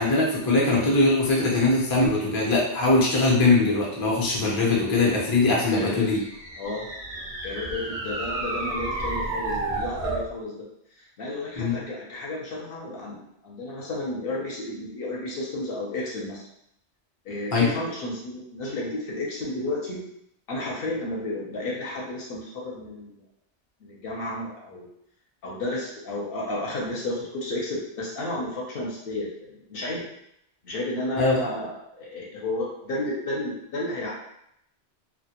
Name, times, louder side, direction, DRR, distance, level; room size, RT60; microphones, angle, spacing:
voice 1, 0.0-6.2 11.6-11.7 17.5-17.7 31.2-31.4, left 2 dB, 30° left, -4 dB, 0.4 m, -21 dB
voice 2, 5.7-6.0 6.6-6.9 7.4-10.6 11.0-16.4 17.2-20.1 20.5-23.2 23.8-24.9 25.4-30.0 30.6-34.1, left 2 dB, 65° left, -3 dB, 0.7 m, -32 dB
sound 1, 5.9-10.3, right 2 dB, 70° right, 0.3 m, -31 dB
2.1 x 2.0 x 2.8 m, 0.77 s
omnidirectional pair, 1.2 m